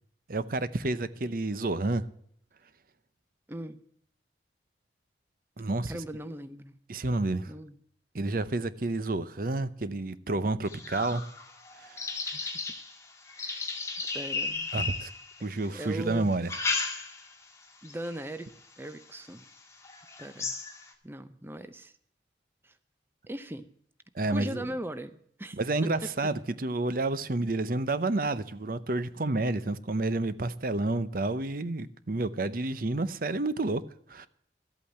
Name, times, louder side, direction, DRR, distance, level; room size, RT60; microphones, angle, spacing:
voice 1, 0.3-2.1 5.6-5.9 6.9-7.5 8.1-11.2 11.9-12.1 14.7-15.1 15.4-16.5 24.1-24.6 25.5-33.8 34.1-34.3, right 2 dB, 50° right, 0.7 m, -30 dB
voice 2, 3.5-3.8 5.9-6.7 7.5-7.8 12.2-12.5 13.3-13.7 14.1-14.7 15.6-16.3 17.8-18.5 18.8-19.5 20.2-20.6 21.0-21.9 22.6-22.7 23.3-23.7 24.3-25.6, right 1 dB, 10° right, 0.6 m, -39 dB
sound 1, 10.7-15.7 16.3-17.4 17.9-18.2 18.8-18.9 19.4-19.5 19.8-20.9, left 4 dB, 15° left, 2.0 m, -35 dB
13.0 x 8.7 x 7.4 m
head